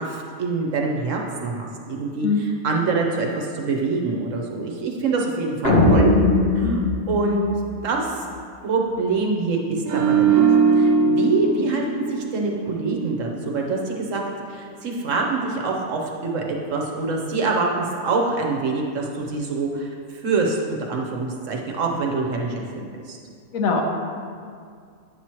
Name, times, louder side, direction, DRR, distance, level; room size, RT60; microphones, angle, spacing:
voice 1, 0.0-6.1 6.5-6.8 7.1-7.4 7.8-8.2 8.6-14.2 14.5-23.2, right 3 dB, 65° right, 0 dB, 1.2 m, -25 dB
voice 2, 2.2-2.4 6.6-6.8 23.5-23.8, left 4 dB, 80° left, 2 dB, 1.2 m, -22 dB
sound 1, 5.6-8.1, left 2 dB, 50° left, 1.0 m, -19 dB
sound 2, 9.9-13.1 13.4-13.7, right 5 dB, 85° right, 1.1 m, -20 dB
9.6 x 6.0 x 3.0 m, 2.2 s
omnidirectional pair, 1.5 m